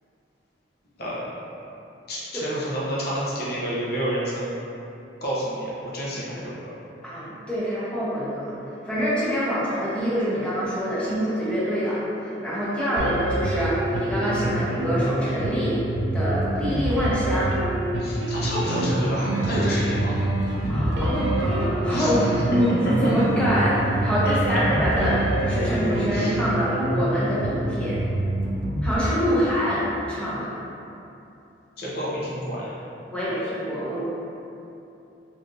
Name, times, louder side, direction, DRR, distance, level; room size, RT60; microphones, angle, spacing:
voice 1, 1.0-1.3 2.1-4.5 5.2-6.7 18.0-20.2 21.9-22.3 24.2-24.8 25.8-26.4 31.8-32.8, equal, 60° left, -7 dB, 0.7 m, -29 dB
voice 2, 7.0-8.5 8.8-15.8 16.1-17.6 20.7-25.2 25.5-28.0 28.8-29.8 30.1-30.5 33.1-34.0, equal, 5° left, -9 dB, 0.7 m, -25 dB
sound 1, 13.0-29.0, right 1 dB, 80° right, 0.4 m, -27 dB
sound 2, 18.7-26.7, right 2 dB, 80° left, 1.0 m, -29 dB
3.3 x 2.6 x 2.6 m, 2.8 s
head